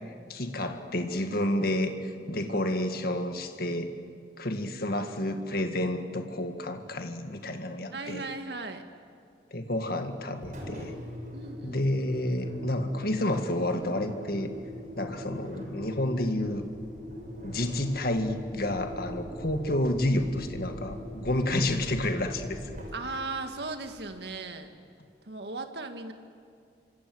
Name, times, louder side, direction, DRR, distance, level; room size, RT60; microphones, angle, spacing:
voice 1, 0.3-3.9 4.4-8.2 9.5-10.9 11.6-14.5 15.0-16.6 17.4-22.9, left 1 dB, 55° left, 6 dB, 2.0 m, -30 dB
voice 2, 7.9-8.8 11.3-11.9 22.9-24.7 25.2-26.1, right 3 dB, 65° right, 6 dB, 2.0 m, -37 dB
Engine, 10.4-24.4, left 1 dB, 45° right, 6.9 m, -41 dB
26.5 x 25.0 x 7.9 m, 2.3 s
head